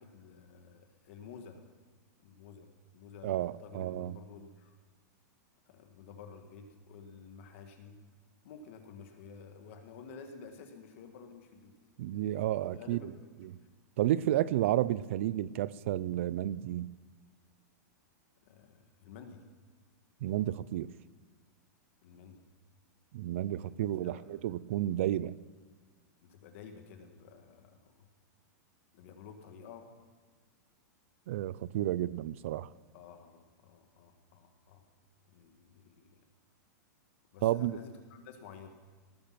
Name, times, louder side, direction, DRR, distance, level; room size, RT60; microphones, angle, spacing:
voice 1, 0.0-1.7 2.2-2.7 2.9-4.8 5.7-8.0 8.4-11.7 12.1-13.7 14.6-14.8 18.4-19.4 22.0-22.4 23.6-24.6 26.2-28.1 28.9-30.0 32.9-34.8 35.3-36.2 37.3-38.7, left 5 dB, 40° left, 6 dB, 1.7 m, -52 dB
voice 2, 3.2-4.2 12.0-13.1 14.0-16.9 20.2-20.9 23.1-25.3 31.3-32.7 37.4-37.8, right 13 dB, 45° right, 20 dB, 0.4 m, -31 dB
19.0 x 10.0 x 6.0 m, 1.4 s
supercardioid pair, 175°, 10 cm